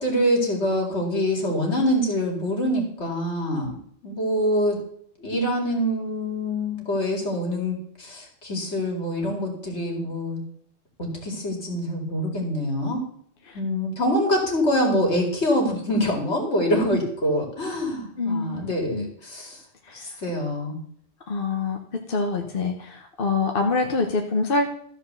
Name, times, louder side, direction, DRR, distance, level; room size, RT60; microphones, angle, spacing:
voice 1, 0.0-3.7 4.0-4.8 5.2-10.4 11.0-13.0 13.5-19.6 19.9-20.8, equal, 70° left, 0 dB, 3.0 m, -25 dB
voice 2, 18.2-18.6 18.9-19.1 19.8-20.2 21.3-24.7, left 3 dB, 50° left, 3 dB, 1.1 m, -25 dB
13.5 x 5.0 x 6.8 m, 0.66 s
omnidirectional pair, 1.2 m